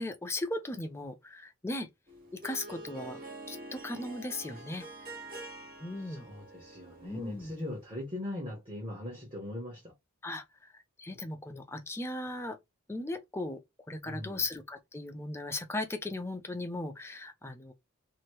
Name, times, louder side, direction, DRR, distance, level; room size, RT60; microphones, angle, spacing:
voice 1, 0.0-1.9 2.3-3.2 3.5-4.9 5.8-6.3 7.0-7.5 10.2-12.6 12.9-13.6 13.9-17.7, left 2 dB, 10° left, 0.4 m, -37 dB
Harp, 2.1-7.9, right 2 dB, 40° right, 1.5 m, -47 dB
voice 2, 6.0-9.9 14.0-14.4, left 1 dB, 25° right, 1.1 m, -40 dB
2.9 x 2.7 x 3.1 m
head